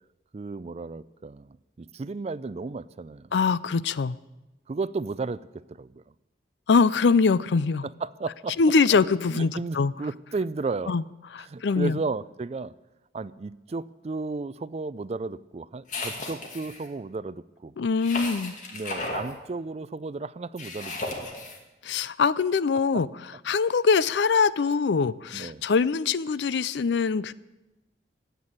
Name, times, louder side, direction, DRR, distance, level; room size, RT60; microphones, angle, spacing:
voice 1, 0.3-3.3 4.7-6.0 7.8-8.6 9.3-10.9 11.4-12.7 13.1-17.7 18.7-21.0 22.9-23.0 25.3-25.6, right 3 dB, 35° right, 18 dB, 0.4 m, -34 dB
voice 2, 3.3-4.2 6.7-7.9 8.6-9.9 10.9-11.0 11.3-12.0 17.8-18.5 21.8-23.1 23.5-27.3, left 5 dB, 80° left, 18 dB, 0.5 m, -23 dB
sound 1, 15.9-16.8 18.0-19.3 20.6-21.6, left 2 dB, 45° left, 2.1 m, -34 dB
13.5 x 8.2 x 8.8 m, 1.0 s
head